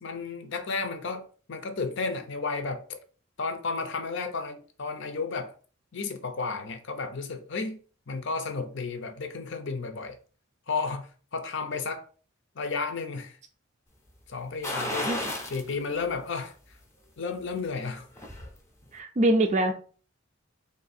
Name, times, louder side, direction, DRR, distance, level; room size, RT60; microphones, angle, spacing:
voice 1, 0.0-3.0 3.4-5.5 5.9-10.2 10.7-12.0 12.5-13.4 14.3-15.1 15.5-16.5 17.2-18.1, left 4 dB, 60° left, 0.6 m, -33 dB
sound 1, 14.6-15.7 16.1-16.2 17.7-18.5 18.9-19.0, left 1 dB, 15° left, 0.7 m, -33 dB
voice 2, 18.9-19.7, right 1 dB, 35° right, 0.4 m, -23 dB
3.6 x 2.6 x 4.2 m
head